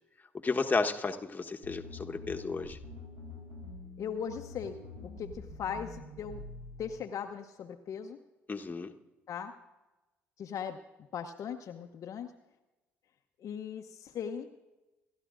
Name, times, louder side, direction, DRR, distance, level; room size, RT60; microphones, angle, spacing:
voice 1, 0.4-2.8 8.5-8.9, left 4 dB, 25° left, 4 dB, 1.2 m, -32 dB
sound 1, 1.6-7.0, left 3 dB, 80° right, 3.8 m, -46 dB
voice 2, 4.0-6.4 6.8-8.2 9.3-9.5 10.4-10.8 11.1-12.3 13.4-14.5, left 7 dB, 50° left, 5 dB, 0.8 m, -39 dB
26.5 x 13.0 x 2.5 m, 1.1 s
hypercardioid pair, 50°, 7 cm